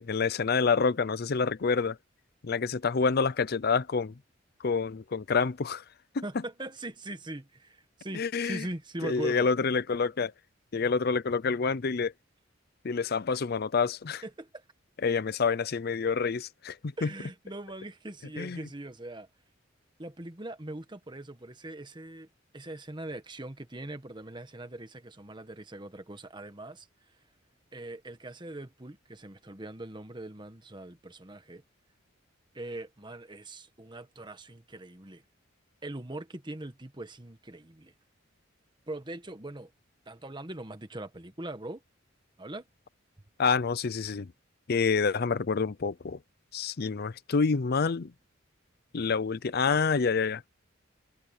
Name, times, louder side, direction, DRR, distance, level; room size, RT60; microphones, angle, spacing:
voice 1, 0.0-2.0 2.4-4.1 4.6-5.8 6.1-6.2 8.1-8.7 9.0-10.3 10.7-12.1 12.8-14.2 15.0-17.1 18.4-18.7 43.4-44.3 44.7-46.2 46.5-48.1 48.9-50.5, left 5 dB, 50° left, 0.5 m, -27 dB
voice 2, 6.2-9.5 14.2-14.6 17.0-19.3 20.0-22.3 22.5-26.9 27.7-31.6 32.5-35.2 35.8-37.9 38.9-39.7 40.1-41.8 42.4-42.7, right 1 dB, 25° right, 1.4 m, -41 dB
head